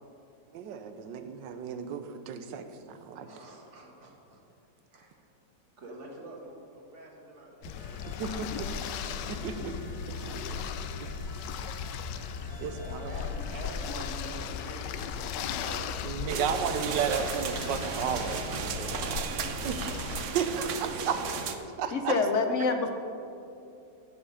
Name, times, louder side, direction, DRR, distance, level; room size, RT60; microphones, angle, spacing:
voice 1, 0.5-3.3 8.1-8.7 9.3-9.7 10.1-10.4 11.0-11.3 12.6-13.1 16.0-19.2 19.6-19.8 20.3-21.1 21.8-22.2, right 7 dB, 85° right, 8 dB, 1.4 m, -33 dB
voice 2, 3.3-4.4 4.9-5.2 5.8-8.9 9.4-9.7 10.2-10.6 12.4-16.5 18.8-19.8 21.0-21.3 21.7-21.8, right 1 dB, 40° right, -1 dB, 1.8 m, -46 dB
sound 1, 7.6-20.2, left 7 dB, 80° left, 1.2 m, -37 dB
sound 2, 7.8-15.4, equal, 20° left, 1.5 m, -51 dB
sound 3, 16.3-21.6, right 6 dB, 60° right, 0.8 m, -35 dB
voice 3, 21.9-22.9, left 4 dB, 60° left, 6 dB, 0.8 m, -26 dB
15.5 x 5.7 x 5.6 m, 2.7 s
omnidirectional pair, 1.9 m